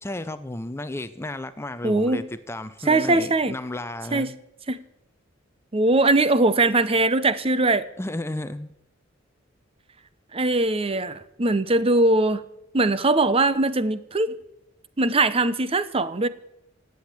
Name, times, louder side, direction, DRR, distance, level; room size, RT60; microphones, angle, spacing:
voice 1, 0.0-4.3 8.0-8.7, left 1 dB, 15° left, 12 dB, 0.6 m, -33 dB
voice 2, 1.8-2.3 2.9-3.5 4.1-4.3 4.7-4.8 5.7-7.9 10.3-12.4 12.7-14.4 15.0-16.3, right 2 dB, 30° right, 14 dB, 0.8 m, -21 dB
17.5 x 8.0 x 9.9 m, 0.83 s
head